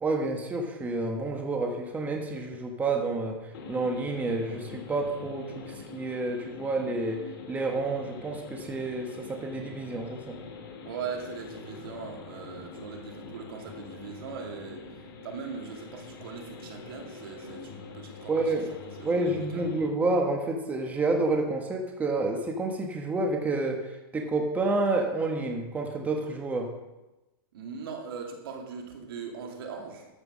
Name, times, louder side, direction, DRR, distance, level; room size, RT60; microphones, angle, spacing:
voice 1, 0.0-3.4 3.7-7.2 7.5-10.4 18.3-18.7 19.0-26.7, right 2 dB, 10° right, 2 dB, 1.3 m, -29 dB
sound 1, 3.5-19.9, left 4 dB, 75° left, 2.6 m, -44 dB
voice 2, 10.8-18.5 19.0-19.7 27.5-30.1, right 5 dB, 70° right, 1 dB, 2.7 m, -40 dB
13.0 x 6.1 x 6.3 m, 1.0 s
supercardioid pair, 145°, 13 cm